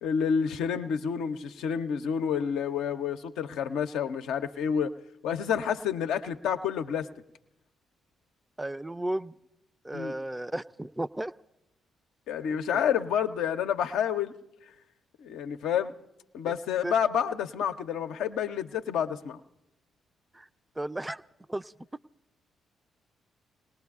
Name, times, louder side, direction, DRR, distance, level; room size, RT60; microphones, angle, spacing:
voice 1, 0.0-4.9 5.2-7.1 9.9-10.1 12.3-14.3 15.2-15.9 16.3-19.4, left 8 dB, 70° left, 7 dB, 0.6 m, -29 dB
voice 2, 8.6-9.4 9.8-11.3 16.4-16.5 16.8-16.9 20.3-20.5 20.8-21.2 21.5-21.7, right 1 dB, 15° right, 15 dB, 0.5 m, -34 dB
29.0 x 19.0 x 2.4 m, 0.89 s
figure-of-eight pair, 40°, 0 cm